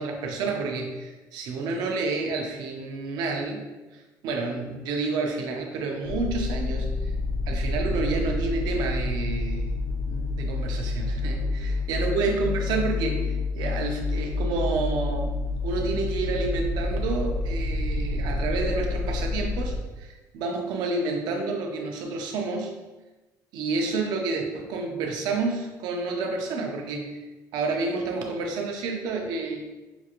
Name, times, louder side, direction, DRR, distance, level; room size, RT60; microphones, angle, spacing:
voice 1, 0.0-7.1 7.5-9.8 10.1-15.3 15.6-22.8 23.5-27.3 27.5-29.6, right 3 dB, 80° right, 2 dB, 0.7 m, -29 dB
sound 1, 6.0-19.8, left 3 dB, 50° left, 0.8 m, -28 dB
5.9 x 2.5 x 2.9 m, 1.1 s
cardioid pair, 150°, 7 cm